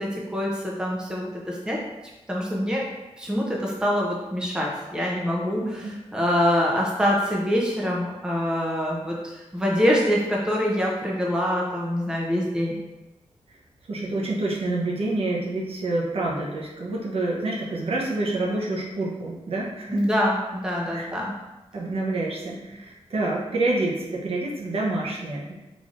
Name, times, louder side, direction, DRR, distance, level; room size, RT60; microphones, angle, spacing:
voice 1, 0.0-1.8 2.3-2.8 3.2-12.8 19.9-21.3, equal, 5° right, -3 dB, 0.5 m, -25 dB
voice 2, 5.6-5.9 13.9-20.1 20.9-21.1 21.7-25.5, right 2 dB, 60° right, -3 dB, 0.7 m, -27 dB
3.9 x 3.1 x 2.5 m, 1.0 s
wide cardioid pair, 140°, 11 cm